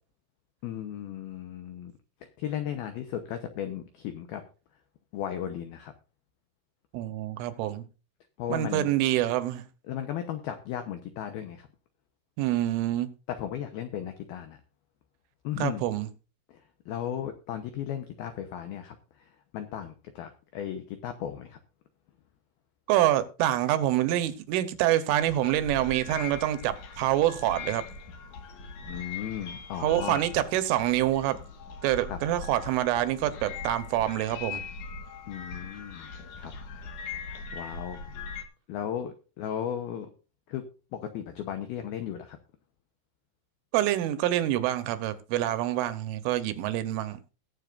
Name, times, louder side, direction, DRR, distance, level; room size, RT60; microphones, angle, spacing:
voice 1, 0.6-1.9 2.2-4.4 5.1-5.9 8.4-8.9 9.9-11.7 13.3-14.6 15.4-15.8 16.5-16.6 16.9-19.0 19.5-21.6 28.8-30.2 32.1-32.2 35.3-36.1 36.4-36.5 37.5-38.1 38.7-40.1 40.5-40.6 40.9-42.4, left 10 dB, 85° left, 2.1 m, -35 dB
voice 2, 6.9-7.9 8.5-9.6 12.4-13.1 15.6-16.1 22.9-27.8 29.8-31.4 31.8-34.6 43.7-47.2, right 13 dB, 80° right, 3.4 m, -26 dB
sound 1, 25.2-38.4, left 5 dB, 60° left, 2.1 m, -41 dB
21.5 x 7.3 x 2.5 m
omnidirectional pair, 5.8 m